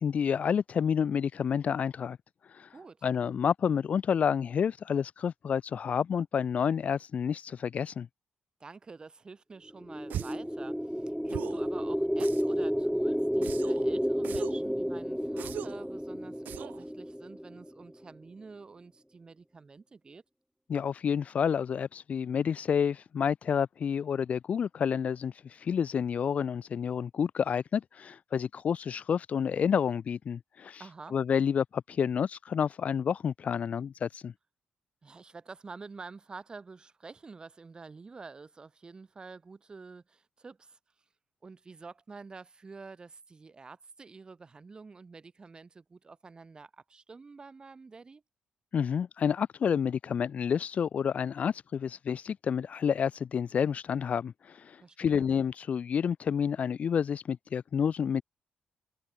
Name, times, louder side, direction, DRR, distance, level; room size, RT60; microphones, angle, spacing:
voice 1, 0.0-2.2 2.5-2.7 3.0-8.1 20.7-30.8 31.1-34.3 48.7-58.2, left 7 dB, 50° left, 1.0 m, -29 dB
voice 2, 2.7-3.1 8.6-20.2 30.8-31.2 35.0-40.8 41.4-48.2 54.8-55.3, right 4 dB, 30° right, 7.5 m, -48 dB
sound 1, 9.7-17.9, equal, ahead, 3.8 m, -31 dB
sound 2, 10.1-10.5 11.3-11.7 12.2-12.7 13.4-13.9 14.2-14.7 15.4-15.9 16.5-16.8, right 11 dB, 75° right, 2.4 m, -39 dB
cardioid pair, 110°, 3 cm